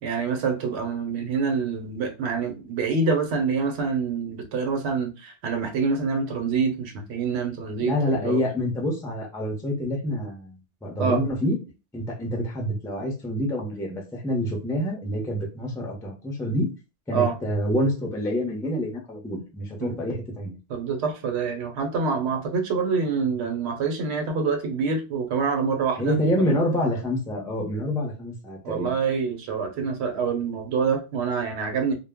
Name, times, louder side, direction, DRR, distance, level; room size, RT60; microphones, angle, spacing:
voice 1, 0.0-8.4 11.0-11.2 17.1-17.4 19.8-20.0 20.7-26.6 28.6-31.9, right 5 dB, 70° right, 0.9 m, -26 dB
voice 2, 7.8-11.6 11.9-16.7 17.1-20.6 26.0-28.9, equal, 5° left, 0.4 m, -27 dB
2.1 x 2.0 x 3.4 m
omnidirectional pair, 1.2 m